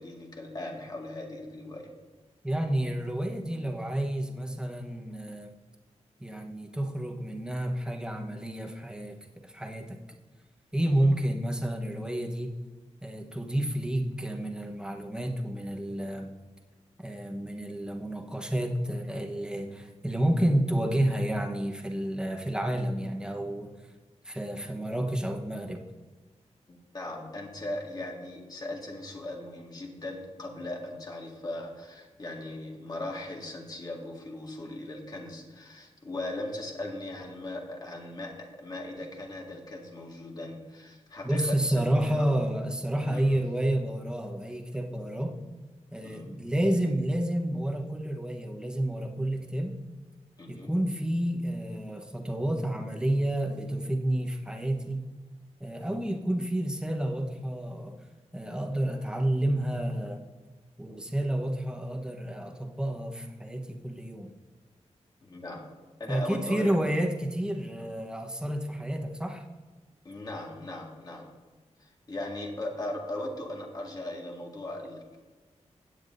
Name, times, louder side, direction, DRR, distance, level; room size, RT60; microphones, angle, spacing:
voice 1, 0.0-1.9 10.8-11.1 26.7-42.3 43.1-43.4 46.0-46.4 50.4-50.7 65.2-65.6 66.0-66.7 70.0-71.3 71.8-75.2, left 1 dB, 35° left, 0 dB, 1.9 m, -38 dB
voice 2, 2.4-5.5 6.2-10.0 10.7-12.6 13.0-16.4 17.0-23.7 24.2-25.8 41.2-45.4 45.9-49.8 50.5-55.1 55.6-58.0 58.3-60.2 60.8-64.3 66.1-69.4, right 1 dB, 5° right, 2 dB, 1.0 m, -30 dB
16.0 x 9.4 x 2.6 m, 1.3 s
wide cardioid pair, 170°, 12 cm